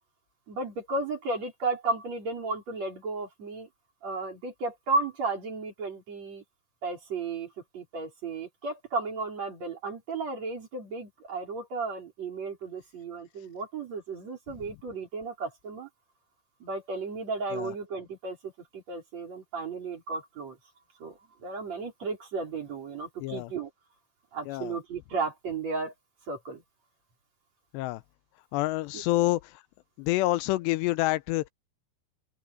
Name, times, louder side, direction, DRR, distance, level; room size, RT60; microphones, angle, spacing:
voice 1, 0.5-3.7 4.0-6.4 6.8-15.9 16.6-20.6 21.0-23.7 24.3-25.9 26.3-26.6 28.9-29.0, right 3 dB, 40° right, 5.4 m, -34 dB
voice 2, 24.5-24.8 27.7-28.0 28.5-29.5 30.0-31.5, left 18 dB, 85° left, 2.8 m, -27 dB
open air
omnidirectional pair, 4.9 m